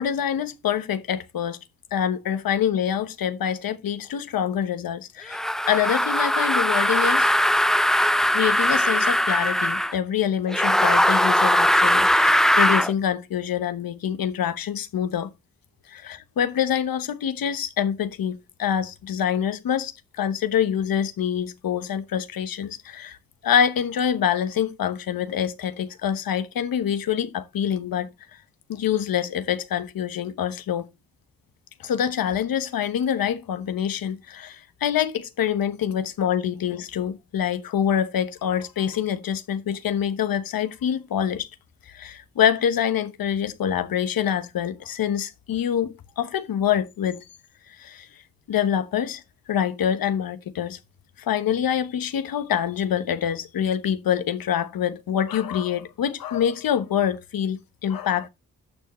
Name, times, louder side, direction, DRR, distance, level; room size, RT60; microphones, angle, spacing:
voice 1, 0.0-1.6 1.9-5.4 5.7-7.3 8.3-15.3 15.9-23.2 23.4-28.1 28.7-30.9 31.8-41.5 41.9-47.2 47.8-48.1 48.5-49.2 49.5-50.8 51.2-58.3, left 9 dB, 80° left, 1.1 m, -25 dB
sound 1, 5.3-10.0 10.5-12.9, equal, ahead, 0.4 m, -20 dB
12.0 x 6.6 x 3.1 m
cardioid pair, 50°, 34 cm